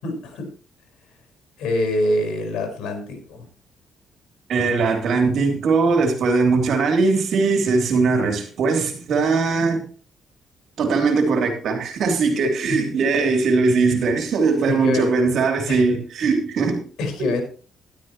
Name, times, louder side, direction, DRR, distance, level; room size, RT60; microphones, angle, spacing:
voice 1, 0.0-0.5 1.6-3.5 12.7-13.0 14.7-15.1 15.7-15.8 17.0-17.4, left 1 dB, 80° left, 4.8 m, -25 dB
voice 2, 4.5-9.9 10.8-16.8 17.2-17.3, right 4 dB, 70° right, 3.2 m, -20 dB
13.0 x 12.5 x 3.1 m
cardioid pair, 90°, 0 cm